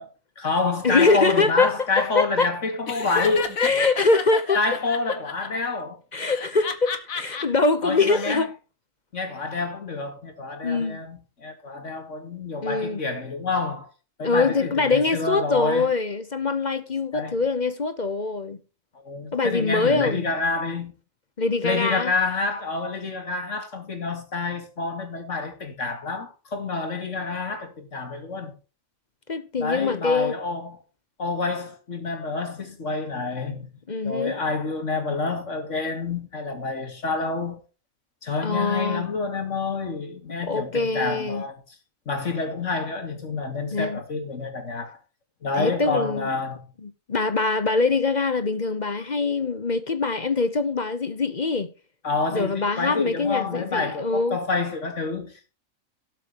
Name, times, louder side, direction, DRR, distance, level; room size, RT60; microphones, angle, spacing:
voice 1, 0.0-3.7 4.5-6.0 7.8-8.5 9.1-13.9 14.2-15.9 17.1-17.4 18.9-20.9 21.6-28.5 29.6-30.8 31.2-33.8 34.0-37.6 38.2-41.5 42.1-45.0 45.4-46.6 52.0-55.5, left 3 dB, 60° left, 2.6 m, -28 dB
voice 2, 0.8-2.5 3.6-4.6 6.1-8.5 10.6-11.0 12.6-13.0 14.2-18.6 19.3-20.3 21.4-22.1 29.3-30.3 33.9-34.4 38.4-39.1 40.4-41.4 43.7-44.0 45.6-46.3 47.1-51.7 52.3-54.4, left 3 dB, 35° left, 0.9 m, -23 dB
Laughter, 2.9-5.5 6.3-7.4 7.9-8.4, left 5 dB, 85° left, 1.9 m, -31 dB
18.0 x 7.5 x 3.0 m
omnidirectional pair, 1.4 m